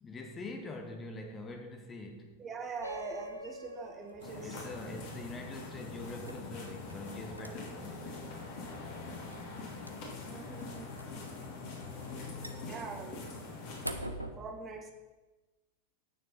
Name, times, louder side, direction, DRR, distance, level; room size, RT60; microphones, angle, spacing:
voice 1, 0.0-2.4 4.4-8.4, left 2 dB, 20° left, 0.9 m, -44 dB
voice 2, 2.4-4.7 10.2-10.9 12.6-13.3 14.4-14.9, right 4 dB, 20° right, 1.3 m, -43 dB
sound 1, 2.7-14.3, right 1 dB, 90° right, 0.8 m, -49 dB
sound 2, 2.8-7.8, left 1 dB, 85° left, 0.8 m, -48 dB
sound 3, 4.2-13.9, left 3 dB, 45° left, 2.6 m, -43 dB
9.6 x 6.7 x 5.3 m
figure-of-eight pair, 90°, 0 cm